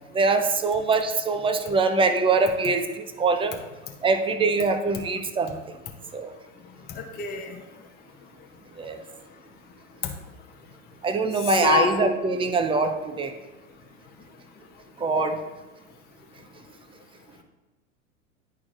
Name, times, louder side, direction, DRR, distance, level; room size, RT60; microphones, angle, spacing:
voice 1, 0.1-3.6 4.0-5.6 6.1-6.4 8.8-9.0 11.0-13.3 15.0-15.4, right 3 dB, 15° right, 7 dB, 0.5 m, -23 dB
voice 2, 6.9-7.6 11.4-11.9, left 7 dB, 25° left, 3 dB, 0.7 m, -27 dB
10.5 x 4.7 x 2.5 m, 1.1 s
hypercardioid pair, 95°, 39 cm